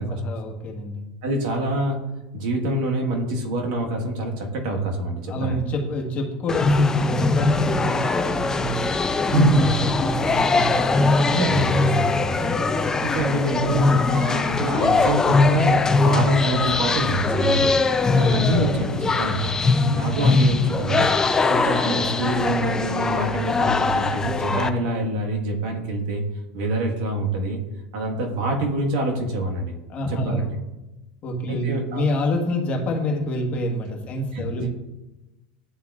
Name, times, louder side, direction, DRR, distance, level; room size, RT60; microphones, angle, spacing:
voice 1, 0.0-1.0 5.3-8.9 9.2-9.4 9.8-11.0 12.4-12.8 18.2-18.6 29.9-30.6 31.2-34.7, equal, 30° left, 0 dB, 1.4 m, -27 dB
voice 2, 1.2-2.0 2.3-5.6 9.3-9.7 11.2-17.8 18.2-19.5 19.9-21.1 21.5-26.2 26.5-27.6 27.9-29.7 30.2-30.4 31.5-32.0 34.3-34.7, right 1 dB, 60° right, 1 dB, 1.4 m, -26 dB
sound 1, 6.5-24.7, left 3 dB, 10° left, 0.3 m, -21 dB
11.0 x 3.7 x 2.4 m, 1.0 s
supercardioid pair, 135°, 5 cm